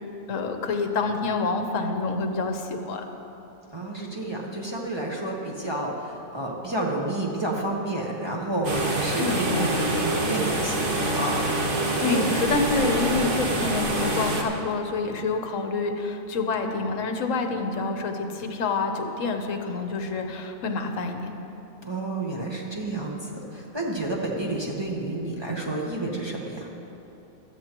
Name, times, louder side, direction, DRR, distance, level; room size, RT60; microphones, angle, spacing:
voice 1, 0.3-3.0 9.2-9.9 12.0-21.3, left 3 dB, 65° left, 5 dB, 1.2 m, -27 dB
voice 2, 3.7-12.2 21.8-26.7, right 2 dB, 20° right, -3 dB, 1.1 m, -30 dB
sound 1, 8.6-14.4, right 1 dB, 40° right, 1.1 m, -26 dB
15.5 x 12.0 x 3.0 m, 2.9 s
omnidirectional pair, 1.5 m